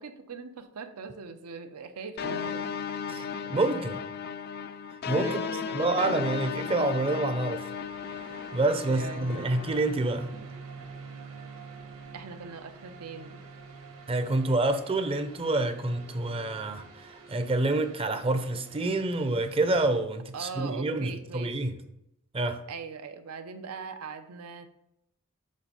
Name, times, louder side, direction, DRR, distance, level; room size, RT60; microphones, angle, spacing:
voice 1, 0.0-2.7 5.2-6.2 8.8-9.7 12.1-13.4 20.3-21.6 22.7-24.7, right 5 dB, 90° right, 9 dB, 0.7 m, -41 dB
sound 1, 2.2-9.8, left 6 dB, 45° left, 0.4 m, -35 dB
voice 2, 3.1-4.0 5.0-5.5 5.7-7.7 8.3-10.3 14.1-21.7 22.3-22.6, right 2 dB, 25° right, 8 dB, 0.5 m, -28 dB
sound 2, 7.5-20.0, right 4 dB, 65° right, 1.3 m, -47 dB
7.5 x 3.5 x 5.5 m, 0.84 s
head